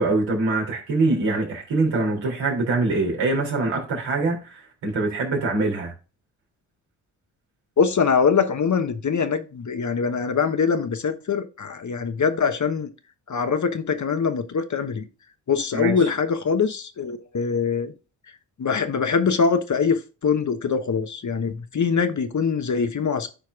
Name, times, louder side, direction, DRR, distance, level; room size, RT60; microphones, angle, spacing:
voice 1, 0.0-5.9 15.7-16.1, right 3 dB, 70° right, 3.2 m, -24 dB
voice 2, 7.8-12.9 13.3-15.1 15.5-17.9 18.6-23.3, left 5 dB, 40° left, 1.1 m, -23 dB
13.5 x 4.6 x 2.5 m
hypercardioid pair, 45°, 48 cm